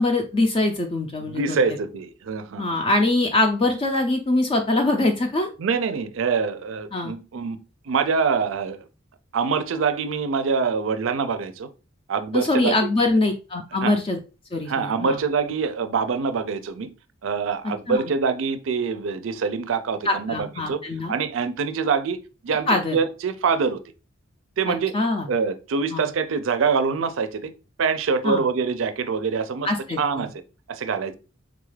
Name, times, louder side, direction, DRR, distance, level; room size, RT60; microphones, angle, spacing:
voice 1, 0.0-1.6 2.6-5.5 6.9-7.1 12.3-14.2 14.5-15.2 17.9-18.0 20.1-21.1 22.7-23.0 24.7-25.3 25.9-26.1 28.2-28.4 29.6-30.3, left 2 dB, 25° left, 0.4 m, -23 dB
voice 2, 1.2-2.6 5.6-7.6 7.9-8.9 9.3-11.7 12.1-12.9 13.7-14.0 14.7-16.9 17.2-20.8 21.1-22.2 22.4-23.8 24.6-24.9 25.3-27.5 27.8-29.7 30.0-30.3 30.7-31.1, right 5 dB, 80° right, 0.4 m, -25 dB
3.8 x 2.3 x 3.2 m
head